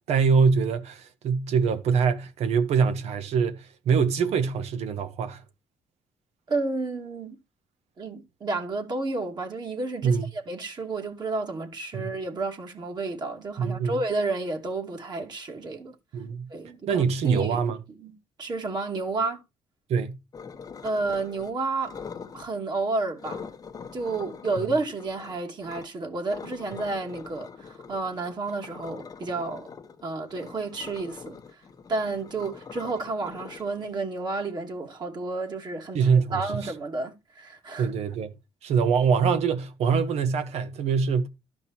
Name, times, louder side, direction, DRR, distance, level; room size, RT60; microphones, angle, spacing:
voice 1, 0.1-5.4 10.0-10.3 11.9-12.1 13.6-14.0 16.1-16.5 16.9-17.8 19.9-20.2 35.9-36.7 37.8-38.3 38.6-41.3, right 6 dB, 80° right, 1.5 m, -24 dB
voice 2, 6.5-7.4 8.0-15.9 16.5-17.6 18.0-18.1 18.4-19.4 20.8-22.0 22.3-23.5 23.9-29.7 30.0-31.6 31.9-37.9, right 3 dB, 40° right, 2.5 m, -31 dB
sound 1, 20.3-21.5 21.8-22.5 23.2-25.9 26.3-34.3, left 6 dB, 35° left, 1.1 m, -43 dB
12.5 x 5.3 x 4.4 m
cardioid pair, 110°, 11 cm